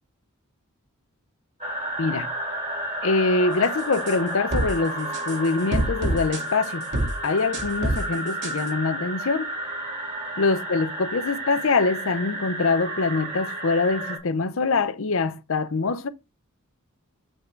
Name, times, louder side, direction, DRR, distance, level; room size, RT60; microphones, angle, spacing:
sound 1, 1.6-14.2, right 1 dB, 30° right, 2.3 m, -32 dB
voice 1, 2.0-2.3 3.0-6.9 7.2-9.5 10.4-16.1, left 3 dB, 65° left, 0.6 m, -24 dB
sound 2, 3.9-4.2 4.5-4.7 5.1-5.4 5.7-6.7 6.9-7.1 7.5-8.0 8.4-8.7, right 1 dB, 55° right, 2.1 m, -25 dB
8.1 x 3.7 x 4.5 m
head